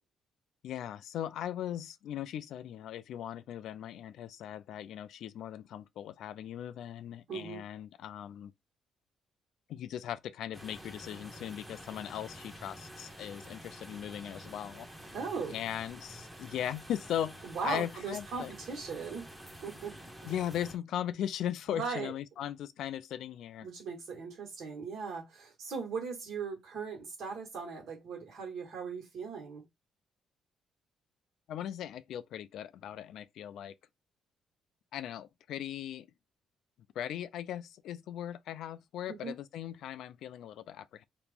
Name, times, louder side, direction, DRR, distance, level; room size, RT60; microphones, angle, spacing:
voice 1, 0.6-8.5 9.7-14.9 15.5-18.5 20.2-23.7 31.5-33.7 34.9-36.1 37.0-41.0, left 10 dB, 80° left, 0.3 m, -38 dB
voice 2, 7.3-7.6 15.1-15.6 17.4-19.3 19.6-19.9 21.7-22.1 23.6-29.6 39.1-39.4, right 5 dB, 70° right, 1.6 m, -38 dB
sound 1, 10.5-20.8, equal, 10° right, 1.0 m, -49 dB
2.9 x 2.5 x 3.5 m
cardioid pair, 90°, 0 cm